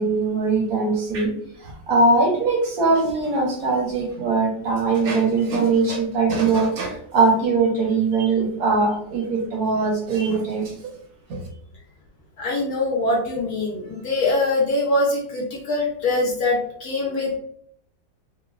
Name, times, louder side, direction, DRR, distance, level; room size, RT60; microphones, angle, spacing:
voice 1, 0.0-1.3 1.9-10.7, right 3 dB, 65° right, 0 dB, 1.0 m, -21 dB
voice 2, 12.4-17.4, left 2 dB, 65° left, -2 dB, 0.9 m, -23 dB
3.0 x 2.1 x 2.3 m, 0.65 s
omnidirectional pair, 2.0 m